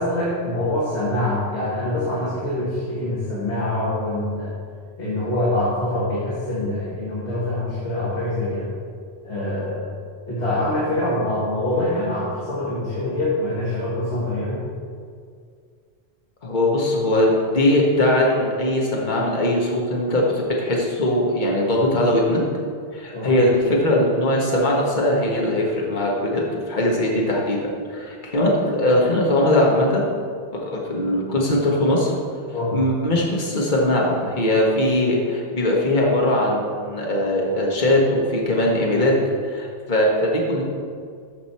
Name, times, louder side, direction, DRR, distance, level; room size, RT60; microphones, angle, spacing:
voice 1, 0.0-4.5 5.0-8.7 9.2-9.9 10.3-14.6 23.1-23.4 32.5-32.8, left 1 dB, 85° left, -8 dB, 2.2 m, -24 dB
voice 2, 16.4-20.2 20.6-22.4 22.9-26.4 26.7-27.6 27.9-30.0 30.5-32.1 32.7-39.1 39.4-40.6, left 1 dB, 45° left, -2 dB, 1.6 m, -20 dB
14.0 x 5.4 x 4.3 m, 2.1 s
omnidirectional pair, 1.1 m